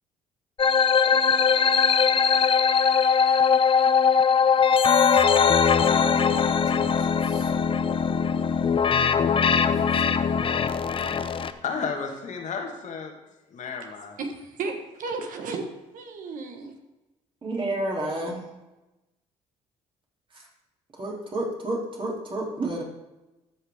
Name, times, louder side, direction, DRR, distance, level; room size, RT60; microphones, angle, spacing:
sound 1, 0.6-11.5, left 6 dB, 35° left, 0.6 m, -21 dB
voice 1, 6.0-7.5 9.9-10.0 17.4-18.5 20.3-20.4 21.0-22.8, right 1 dB, 35° right, -1 dB, 3.0 m, -31 dB
voice 2, 11.6-13.1 13.5-14.2, left 5 dB, 55° left, 3 dB, 1.7 m, -32 dB
voice 3, 14.2-15.6 15.9-16.8, right 4 dB, 65° right, 5 dB, 1.4 m, -33 dB
13.5 x 5.5 x 3.6 m, 1.0 s
supercardioid pair, 60°, 15 cm